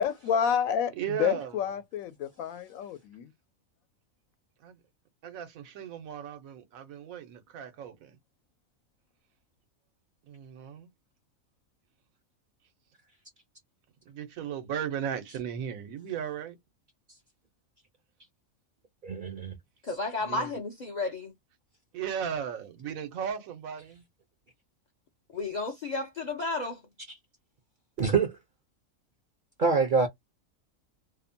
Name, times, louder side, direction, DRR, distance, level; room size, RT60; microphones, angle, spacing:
voice 1, 0.0-3.3, left 8 dB, 80° left, 1.0 m, -29 dB
voice 2, 1.0-1.6 4.6-4.8 5.2-8.1 10.3-10.9 14.1-16.6 20.2-20.5 21.9-24.0, right 8 dB, 90° right, 1.1 m, -36 dB
voice 3, 19.0-19.5 28.0-28.3 29.6-30.1, right 5 dB, 55° right, 0.6 m, -25 dB
voice 4, 19.8-21.3 25.3-26.8, left 3 dB, 55° left, 0.5 m, -32 dB
2.7 x 2.1 x 2.6 m
omnidirectional pair, 1.4 m